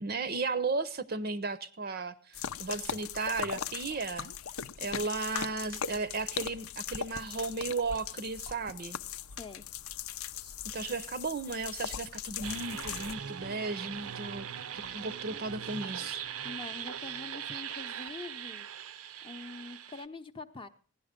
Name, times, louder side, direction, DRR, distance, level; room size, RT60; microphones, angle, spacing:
voice 1, 0.0-4.3 4.8-9.0 10.4-14.5 14.7-16.2, right 3 dB, 45° right, 0.6 m, -35 dB
sound 1, 2.3-13.1, left 8 dB, 80° left, 0.6 m, -39 dB
voice 2, 9.3-9.6 16.4-18.6 19.2-20.7, left 3 dB, 25° left, 0.6 m, -45 dB
sound 2, 12.4-20.0, right 8 dB, 85° right, 0.6 m, -40 dB
16.0 x 11.0 x 5.1 m
head